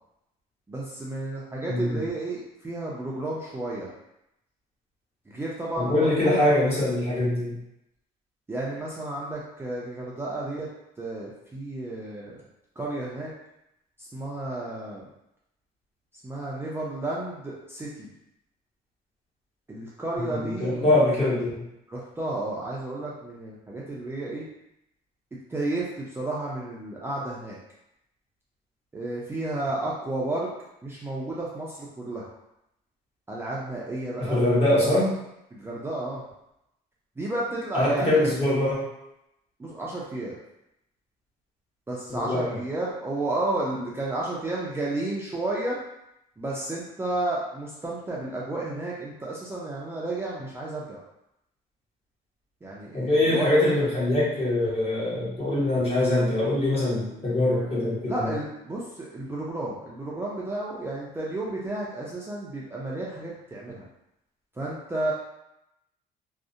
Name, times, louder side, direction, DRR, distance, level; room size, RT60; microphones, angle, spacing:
voice 1, 0.7-3.9 5.3-6.5 8.5-10.7 11.0-12.4 12.8-13.3 14.0-15.0 16.2-18.1 19.7-20.9 21.9-24.5 25.5-27.6 28.9-30.5 30.8-32.3 33.3-34.6 35.5-36.2 37.2-38.3 39.6-40.3 41.9-45.8 46.4-51.0 52.6-53.7 58.1-63.9 64.6-65.1, right 2 dB, 15° right, -5 dB, 0.4 m, -32 dB
voice 2, 1.7-2.1 5.7-7.6 20.3-21.6 34.2-35.2 37.7-38.9 42.1-42.6 52.9-58.3, left 1 dB, 35° left, -7 dB, 1.2 m, -23 dB
2.6 x 2.0 x 2.5 m, 0.84 s
cardioid pair, 110°, 17 cm